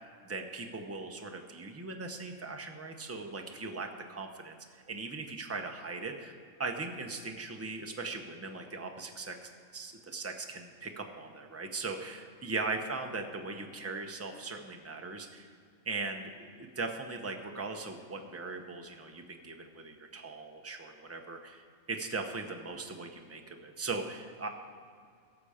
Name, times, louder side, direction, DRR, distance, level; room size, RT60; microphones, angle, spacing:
voice 1, 0.2-15.5 15.8-24.5, right 3 dB, 15° right, 4 dB, 0.6 m, -39 dB
16.5 x 6.8 x 5.0 m, 2.2 s
omnidirectional pair, 1.4 m